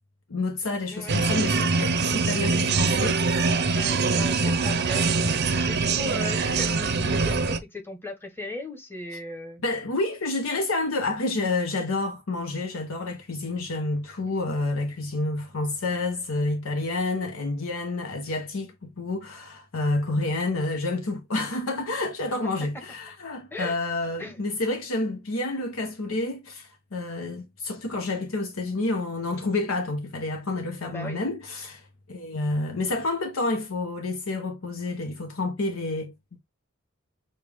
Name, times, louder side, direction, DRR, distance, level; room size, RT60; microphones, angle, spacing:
voice 1, 0.3-3.5 9.6-36.4, left 2 dB, 85° left, 0.8 m, -29 dB
sound 1, 1.1-7.6, right 4 dB, 55° right, 0.6 m, -23 dB
voice 2, 3.3-5.4 5.7-9.6 22.3-22.5 23.5-23.8 24.2-24.4 30.8-31.2, left 2 dB, 10° left, 1.0 m, -37 dB
6.6 x 2.3 x 3.3 m
head